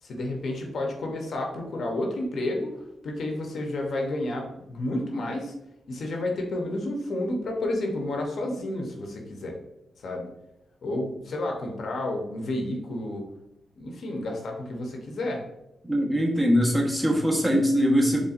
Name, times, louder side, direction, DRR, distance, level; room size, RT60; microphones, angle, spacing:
voice 1, 0.0-2.7 3.0-5.5 5.9-9.6 10.0-10.3 10.8-13.3 13.8-15.4, left 1 dB, 65° left, 1 dB, 0.8 m, -30 dB
voice 2, 15.8-18.2, equal, 10° right, -1 dB, 1.0 m, -22 dB
4.1 x 3.3 x 2.5 m, 0.86 s
cardioid pair, 75°, 0 cm